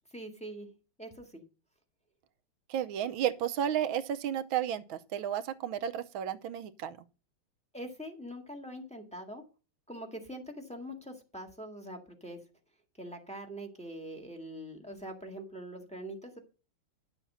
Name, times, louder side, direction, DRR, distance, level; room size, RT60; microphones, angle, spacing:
voice 1, 0.1-0.7 1.0-1.4 7.7-9.4 9.9-12.4 13.0-16.4, equal, 5° left, 1.5 m, -43 dB
voice 2, 2.7-7.0, right 10 dB, 75° right, 1.5 m, -32 dB
11.0 x 7.2 x 5.5 m
omnidirectional pair, 2.4 m